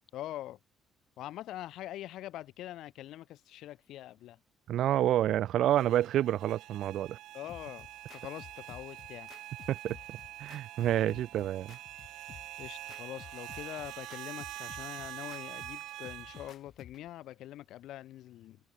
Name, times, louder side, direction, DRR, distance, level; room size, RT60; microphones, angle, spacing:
voice 1, 0.1-0.6 1.2-4.4 7.3-7.9 8.1-9.3 12.6-18.6, left 14 dB, 70° left, 0.9 m, -44 dB
voice 2, 4.7-7.2 9.7-10.0 10.4-11.8, right 12 dB, 60° right, 0.6 m, -28 dB
sound 1, 5.7-16.5, right 16 dB, 85° right, 1.0 m, -45 dB
sound 2, 7.5-17.1, left 9 dB, 45° left, 3.4 m, -54 dB
cardioid pair, 170°, 0 cm